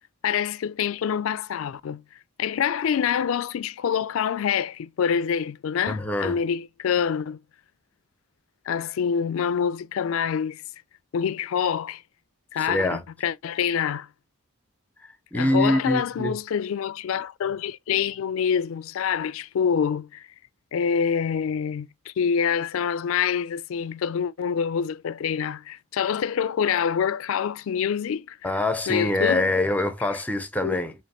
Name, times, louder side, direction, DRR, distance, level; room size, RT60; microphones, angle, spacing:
voice 1, 0.2-2.0 2.4-7.4 8.7-10.6 11.1-12.0 12.5-14.1 15.3-20.3 20.7-28.5 28.9-29.5 30.6-30.8, left 7 dB, 70° left, 0.3 m, -26 dB
voice 2, 5.9-6.4 12.6-13.0 15.3-16.4 28.4-30.9, left 1 dB, 5° left, 0.5 m, -24 dB
5.1 x 2.9 x 2.9 m
head